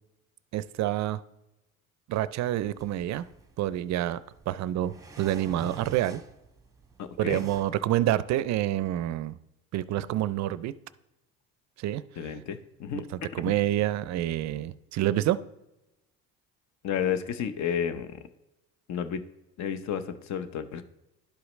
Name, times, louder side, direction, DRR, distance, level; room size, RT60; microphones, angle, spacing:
voice 1, 0.5-1.2 2.1-3.2 3.6-4.2 4.5-6.2 7.2-9.4 9.7-10.8 11.8-12.0 13.3-15.4, right 13 dB, 50° right, 17 dB, 0.4 m, -27 dB
sound 1, 2.6-7.7, right 3 dB, 10° right, 1.0 m, -46 dB
voice 2, 7.0-7.4 12.2-13.1 13.4-13.6 16.8-18.3 18.9-19.2 19.6-20.8, left 8 dB, 50° left, 10 dB, 0.8 m, -31 dB
11.5 x 4.8 x 3.1 m, 0.92 s
supercardioid pair, 75°, 35 cm